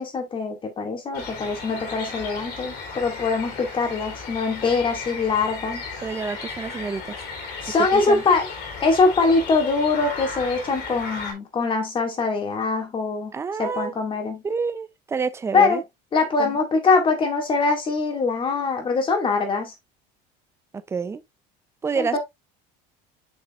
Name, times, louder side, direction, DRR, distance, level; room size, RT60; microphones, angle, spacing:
voice 1, 0.0-5.8 7.6-8.5 8.8-13.3 13.6-14.4 15.5-15.8 16.1-19.7 22.0-22.2, left 4 dB, 25° left, 2.2 m, -23 dB
sound 1, 1.1-11.3, left 4 dB, 55° left, 3.0 m, -35 dB
voice 2, 6.0-7.3 7.9-8.2 13.3-13.9 14.4-15.8 16.4-16.6 20.7-21.2 21.8-22.2, right 5 dB, 15° right, 0.5 m, -28 dB
7.3 x 5.4 x 2.4 m
cardioid pair, 150°, 20 cm